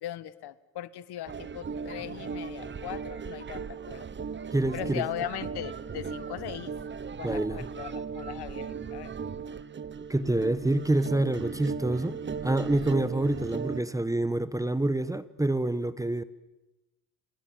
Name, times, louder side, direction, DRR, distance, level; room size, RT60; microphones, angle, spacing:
voice 1, 0.0-4.0 4.7-6.7 7.2-9.1 13.0-13.2, left 12 dB, 55° left, 1.5 m, -39 dB
sound 1, 1.3-13.8, right 6 dB, 25° right, 1.1 m, -37 dB
voice 2, 4.5-5.0 7.2-7.6 10.0-16.2, right 1 dB, 5° right, 1.3 m, -27 dB
30.0 x 25.5 x 7.6 m
hypercardioid pair, 75°, 47 cm